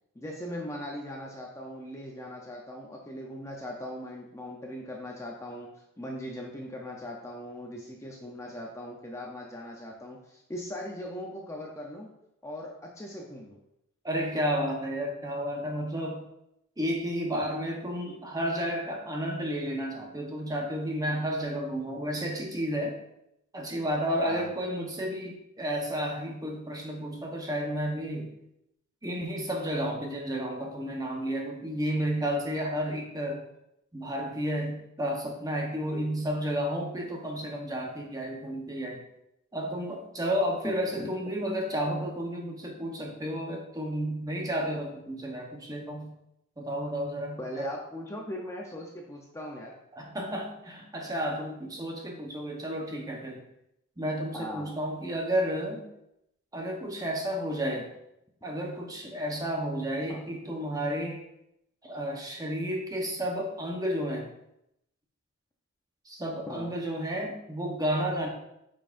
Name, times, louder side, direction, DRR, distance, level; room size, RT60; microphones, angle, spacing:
voice 1, 0.1-5.7 6.0-12.1 12.4-13.6 24.2-24.5 40.6-41.1 47.4-49.7 54.3-54.7 60.1-60.2 66.5-66.7, equal, 15° left, -1 dB, 0.7 m, -39 dB
voice 2, 14.0-16.3 16.8-23.0 23.5-28.3 29.0-33.4 33.9-39.0 39.5-46.1 46.6-47.7 49.9-53.4 54.0-55.9 56.5-57.9 58.4-61.2 61.8-64.3 66.0-68.3, equal, 15° right, 1 dB, 1.0 m, -32 dB
8.7 x 5.5 x 2.6 m, 0.82 s
head